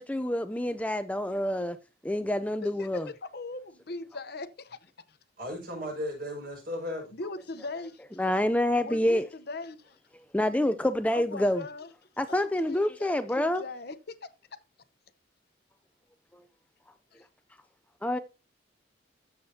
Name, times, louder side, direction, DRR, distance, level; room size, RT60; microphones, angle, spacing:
voice 1, 0.0-1.8 2.0-3.1 8.2-9.3 10.3-11.6 12.2-13.6 18.0-18.2, left 1 dB, 5° left, 0.4 m, -27 dB
voice 2, 2.8-4.8 5.1-5.2 7.1-8.0 8.8-10.0 11.1-11.9 12.3-14.3 17.1-17.2, left 2 dB, 55° left, 0.9 m, -40 dB
voice 3, 5.4-7.2, left 1 dB, 50° right, 6.3 m, -35 dB
14.0 x 7.2 x 2.8 m
head